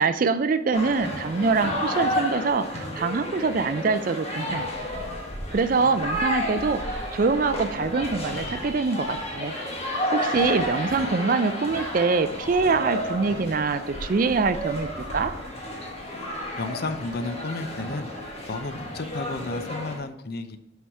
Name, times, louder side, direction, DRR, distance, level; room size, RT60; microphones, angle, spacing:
voice 1, 0.0-4.7 5.5-9.5 10.1-15.3, right 4 dB, 40° right, 11 dB, 0.4 m, -24 dB
sound 1, 0.7-20.0, equal, 30° left, 1.4 m, -31 dB
voice 2, 16.6-18.1 18.5-20.6, left 3 dB, 50° left, 10 dB, 0.5 m, -32 dB
5.9 x 5.6 x 4.7 m, 0.76 s
head